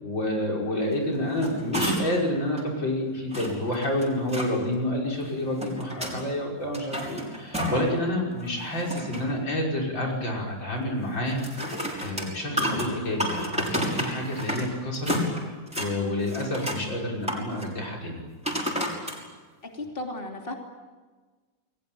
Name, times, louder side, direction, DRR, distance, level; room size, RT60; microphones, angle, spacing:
voice 1, 0.0-11.4 12.0-15.2 15.8-18.2, left 1 dB, 90° left, -1 dB, 6.6 m, -29 dB
sound 1, 1.1-2.3 2.6-2.7 3.3-4.5 5.3-6.2 6.6-7.9 8.3-9.3 11.3-14.7 14.9-15.9 16.3-16.8 17.2-17.7 18.4-19.2 19.8-19.9, equal, 5° right, 6.1 m, -31 dB
voice 2, 12.5-12.8 19.8-20.5, left 2 dB, 30° left, 2 dB, 3.2 m, -35 dB
30.0 x 21.0 x 9.1 m, 1.3 s
omnidirectional pair, 2.0 m